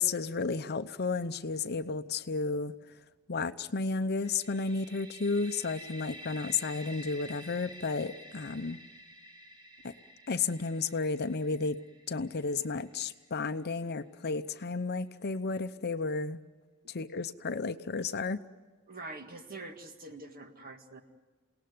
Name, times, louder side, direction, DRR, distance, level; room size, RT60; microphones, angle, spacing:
voice 1, 0.0-2.7 3.3-8.8 10.3-11.8 12.1-16.4 16.9-18.4, left 4 dB, 50° left, 11 dB, 0.8 m, -32 dB
sound 1, 4.2-13.9, equal, 20° right, 1.9 m, -50 dB
voice 2, 18.9-21.0, right 2 dB, 45° right, 6 dB, 1.9 m, -45 dB
28.5 x 18.5 x 9.5 m, 1.3 s
head